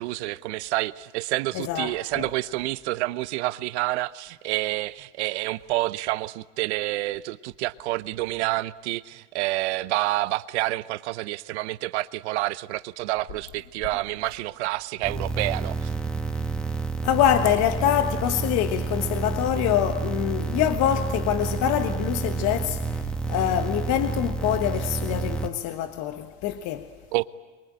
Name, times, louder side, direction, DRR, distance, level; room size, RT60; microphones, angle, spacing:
voice 1, 0.0-15.9 27.1-27.2, right 18 dB, 60° right, 0.8 m, -28 dB
voice 2, 1.5-2.3 17.0-26.9, left 11 dB, 45° left, 1.4 m, -25 dB
sound 1, 15.0-25.5, right 4 dB, ahead, 1.4 m, -29 dB
23.0 x 22.5 x 8.7 m
hypercardioid pair, 110°, 38 cm